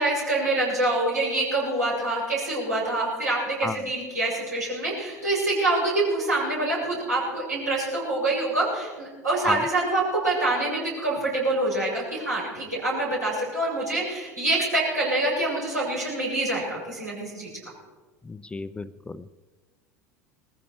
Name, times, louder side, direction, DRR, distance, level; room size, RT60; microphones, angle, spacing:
voice 1, 0.0-17.5, right 2 dB, 85° right, -5 dB, 7.6 m, -26 dB
voice 2, 18.2-19.3, left 3 dB, 10° left, 14 dB, 0.5 m, -33 dB
20.5 x 15.0 x 4.7 m, 1.3 s
figure-of-eight pair, 75°, 9 cm